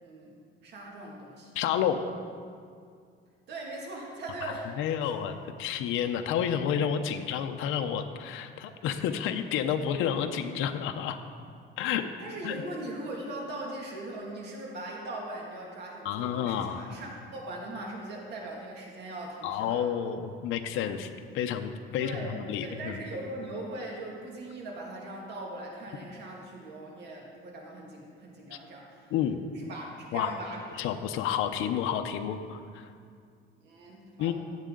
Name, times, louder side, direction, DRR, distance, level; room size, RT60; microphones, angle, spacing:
voice 1, 0.0-1.5 3.5-4.7 5.0-5.1 12.2-19.8 22.0-29.1 29.5-30.7 33.6-34.3, right 2 dB, 55° right, -1 dB, 2.1 m, -40 dB
voice 2, 1.5-2.1 4.4-11.2 11.8-12.0 12.4-12.6 16.0-16.8 19.4-23.0 28.5-28.6 29.1-29.4 30.1-30.3 30.8-32.9 34.2-34.3, left 9 dB, 75° left, 6 dB, 0.7 m, -30 dB
16.5 x 7.5 x 3.8 m, 2.2 s
cardioid pair, 165°, 21 cm